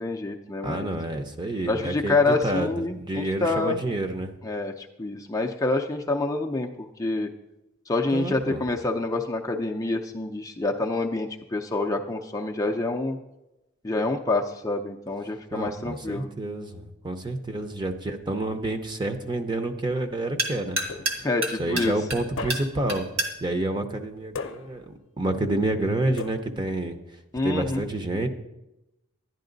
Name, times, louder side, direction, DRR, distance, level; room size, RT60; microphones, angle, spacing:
voice 1, 0.0-0.9 1.7-3.8 4.4-7.3 7.9-13.2 13.8-16.3 21.2-22.0 27.3-27.8, left 2 dB, 15° left, 1 dB, 0.5 m, -27 dB
voice 2, 0.6-4.3 8.1-8.6 15.5-20.8 21.6-23.1 23.4-27.0 27.4-28.3, right 2 dB, 20° right, 6 dB, 0.7 m, -29 dB
sound 1, 17.3-24.9, right 2 dB, 65° right, 2.1 m, -34 dB
sound 2, 20.9-21.5 22.4-23.0 24.3-25.0 26.2-26.8, left 4 dB, 65° left, 0.6 m, -37 dB
11.0 x 10.5 x 3.9 m, 0.94 s
head